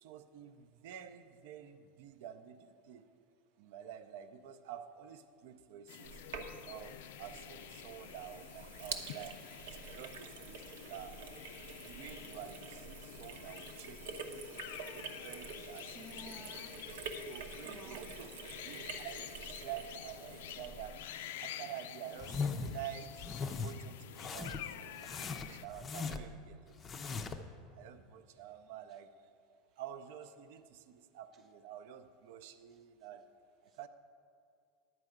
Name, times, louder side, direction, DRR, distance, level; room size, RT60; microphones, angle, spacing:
voice 1, 0.0-3.0 3.6-6.2 6.7-9.4 9.9-11.2 11.7-14.6 14.9-16.1 16.9-18.3 18.6-19.3 19.6-21.0 21.4-23.1 23.5-26.8 27.1-27.2 27.7-29.1 29.8-33.2 33.8-33.9, right 10 dB, 65° right, 10 dB, 0.5 m, -49 dB
sound 1, 5.9-25.7, left 11 dB, 80° left, 0.4 m, -49 dB
Sink (filling or washing), 6.0-21.1, right 5 dB, 85° right, 0.9 m, -47 dB
voice 2, 15.9-16.8 17.6-18.1, right 1 dB, 30° right, 6 dB, 0.7 m, -53 dB
sound 2, 22.2-22.8 23.2-23.7 24.2-24.7 25.0-26.4 26.8-27.5, left 4 dB, 20° left, 0.5 m, -39 dB
11.0 x 4.8 x 7.8 m, 2.3 s
supercardioid pair, 150°, 0 cm